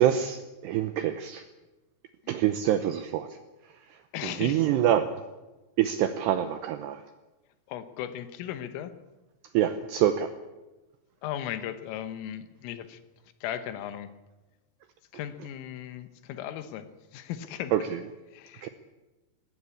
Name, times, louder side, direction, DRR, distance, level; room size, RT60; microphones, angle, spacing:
voice 1, 0.0-1.4 2.3-3.4 3.9-5.2 5.8-7.0 9.5-10.3 17.7-18.0 18.6-18.7, right 11 dB, 85° right, 10 dB, 2.4 m, -26 dB
voice 2, 4.1-4.6 7.7-8.9 11.2-13.0 13.4-14.1 15.1-17.7 18.3-18.7, left 11 dB, 80° left, 11 dB, 3.7 m, -37 dB
19.0 x 17.0 x 8.5 m, 1.1 s
omnidirectional pair, 5.9 m